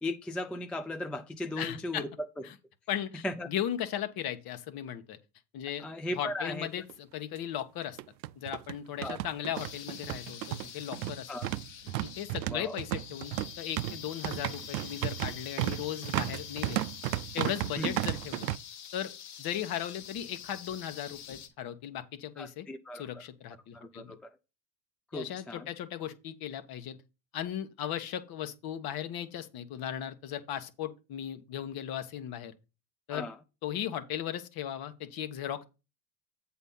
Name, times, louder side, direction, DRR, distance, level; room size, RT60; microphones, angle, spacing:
voice 1, 0.0-2.1 3.2-3.5 5.8-6.7 9.0-9.2 11.3-11.5 12.5-12.8 17.8-17.9 22.4-23.2 23.7-24.4 25.1-25.7 33.1-33.4, left 1 dB, 5° left, 0.3 m, -37 dB
voice 2, 1.6-2.0 2.4-2.5 2.9-5.2 5.5-5.8 6.2-8.0 8.4-11.5 12.2-16.8 17.3-18.5 18.9-19.1 19.4-22.7 22.9-24.1 25.1-27.0 27.3-32.5 33.1-33.3 33.6-35.6, left 10 dB, 45° left, 1.3 m, -37 dB
sound 1, 6.5-6.6 6.9-7.0 7.8-18.6, right 16 dB, 90° right, 0.5 m, -34 dB
sound 2, 9.5-21.5, left 9 dB, 65° left, 2.0 m, -46 dB
8.0 x 4.2 x 5.6 m
hypercardioid pair, 95°, 49 cm